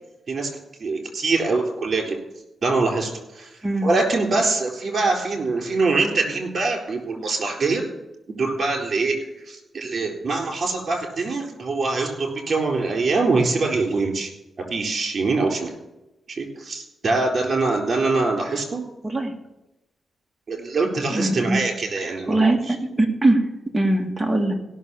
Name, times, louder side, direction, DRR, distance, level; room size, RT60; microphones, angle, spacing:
voice 1, 0.8-2.2 2.6-7.8 8.3-9.2 9.4-14.3 14.6-15.7 16.3-18.8 20.5-22.7, right 3 dB, 50° right, 2 dB, 4.0 m, -24 dB
voice 2, 21.1-21.6 22.0-23.4 23.7-24.5, right 2 dB, 15° right, 2 dB, 2.1 m, -21 dB
16.5 x 6.5 x 7.1 m, 0.96 s
cardioid pair, 90°, 0 cm